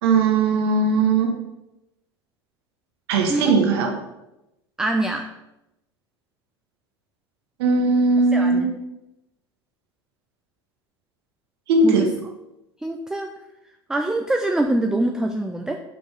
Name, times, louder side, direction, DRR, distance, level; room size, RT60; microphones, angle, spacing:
voice 1, 0.0-1.3 3.1-3.9 7.6-8.7 11.7-12.0, right 3 dB, 70° right, 2 dB, 1.2 m, -18 dB
voice 2, 3.3-3.6 4.8-5.3 8.3-8.7 11.8-12.1 12.8-13.3 13.9-15.8, right 2 dB, 5° right, 4 dB, 0.4 m, -24 dB
5.2 x 5.1 x 3.7 m, 0.92 s
hypercardioid pair, 80°, 14 cm